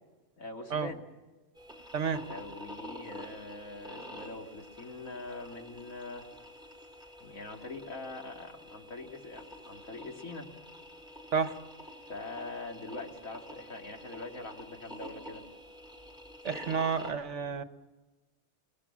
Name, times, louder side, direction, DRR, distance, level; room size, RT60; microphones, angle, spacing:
voice 1, 0.4-1.0 2.3-6.3 7.2-10.5 12.1-15.4 17.4-17.6, left 3 dB, 80° left, 2 dB, 3.0 m, -43 dB
sound 1, 1.6-17.1, equal, 5° right, 5.3 m, -48 dB
voice 2, 1.9-2.3 11.3-11.6 16.4-17.6, right 6 dB, 65° right, 11 dB, 1.4 m, -31 dB
29.0 x 18.5 x 7.3 m, 1.2 s
omnidirectional pair, 1.4 m